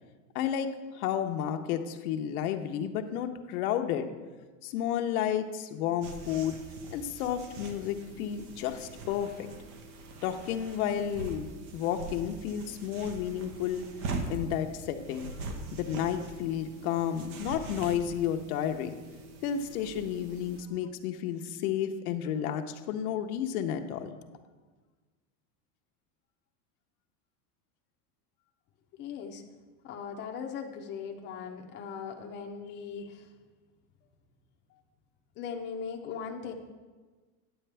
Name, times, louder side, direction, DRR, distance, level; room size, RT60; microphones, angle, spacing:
voice 1, 0.3-4.1 4.6-6.5 6.9-9.3 10.2-13.9 14.3-15.3 15.7-19.0 19.4-24.1, left 9 dB, 85° left, 6 dB, 0.9 m, -32 dB
sound 1, 6.0-20.6, right 3 dB, 70° right, 1.3 m, -42 dB
voice 2, 28.9-29.4 29.8-33.3 34.7-34.8 35.4-36.5, left 6 dB, 25° left, 2 dB, 0.6 m, -39 dB
9.2 x 9.0 x 3.4 m, 1.3 s
supercardioid pair, 165°, 43 cm